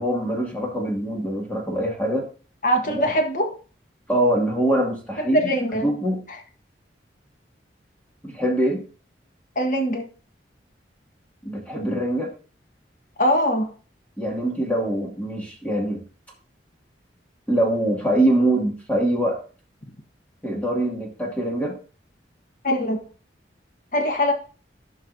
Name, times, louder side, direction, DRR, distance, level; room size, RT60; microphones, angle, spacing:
voice 1, 0.0-2.3 4.1-5.5 5.8-6.2 8.2-8.8 11.4-12.3 14.2-16.0 17.5-19.4 20.4-21.7, right 1 dB, 10° left, -1 dB, 2.1 m, -23 dB
voice 2, 2.6-3.5 5.2-5.9 9.5-10.1 13.2-13.7 22.6-23.0 23.9-24.3, equal, 45° left, 4 dB, 1.4 m, -22 dB
15.5 x 5.3 x 2.7 m, 0.39 s
head